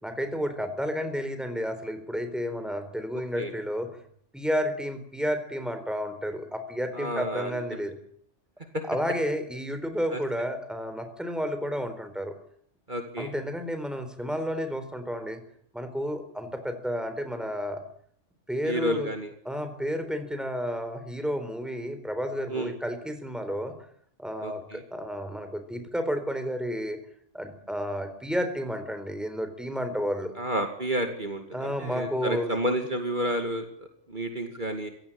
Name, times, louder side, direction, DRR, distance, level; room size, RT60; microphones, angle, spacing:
voice 1, 0.0-3.9 4.3-7.9 8.8-12.3 13.2-15.4 15.7-17.8 18.5-19.1 19.4-23.7 24.2-27.0 27.3-30.3 31.5-32.5, equal, ahead, 8 dB, 4.1 m, -31 dB
voice 2, 6.9-7.6 10.1-10.2 12.9-13.3 18.6-19.3 22.5-22.7 24.4-24.8 30.4-34.9, right 1 dB, 40° right, 5 dB, 2.5 m, -30 dB
26.5 x 17.0 x 8.8 m, 0.64 s
omnidirectional pair, 1.2 m